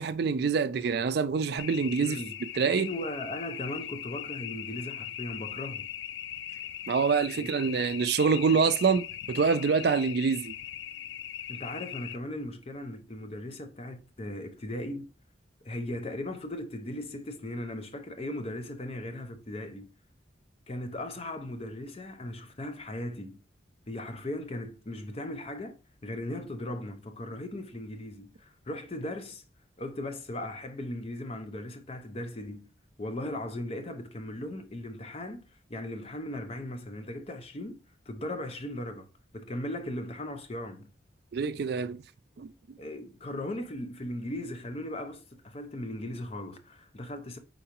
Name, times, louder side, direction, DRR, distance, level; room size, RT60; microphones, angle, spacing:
voice 1, 0.0-2.2 2.5-2.9 6.9-10.5 41.3-42.0 42.4-42.5, right 5 dB, 60° right, 0.4 m, -26 dB
sound 1, 1.6-12.2, left 11 dB, 75° left, 0.3 m, -40 dB
voice 2, 2.0-2.4 2.7-5.9 7.3-7.5 11.5-15.1 15.6-19.9 20.7-23.4 23.9-29.4 29.8-32.7 33.0-37.8 38.1-39.1 39.3-40.9 42.8-47.4, left 1 dB, 35° left, 0.6 m, -38 dB
4.7 x 3.9 x 2.9 m
head